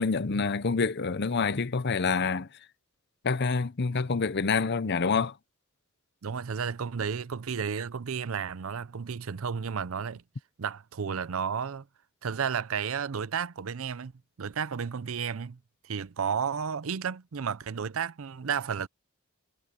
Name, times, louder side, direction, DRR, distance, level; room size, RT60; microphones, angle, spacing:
voice 1, 0.0-2.5 3.2-5.3, left 4 dB, 55° left, 0.7 m, -27 dB
voice 2, 6.2-10.2 10.6-11.9 12.2-14.1 14.4-15.6 15.8-18.9, right 6 dB, 70° right, 0.6 m, -32 dB
head